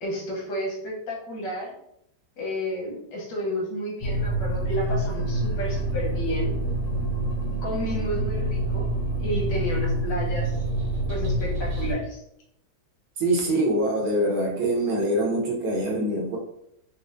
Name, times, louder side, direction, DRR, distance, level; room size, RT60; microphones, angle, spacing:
voice 1, 0.0-1.7 2.4-6.6 7.6-8.9 9.2-10.5 11.1-12.2, equal, 90° left, -3 dB, 1.5 m, -31 dB
sound 1, 4.0-11.9, right 1 dB, 85° right, 1.8 m, -27 dB
voice 2, 13.2-16.4, right 1 dB, 65° right, -1 dB, 1.1 m, -24 dB
4.2 x 2.0 x 2.5 m, 0.76 s
omnidirectional pair, 1.8 m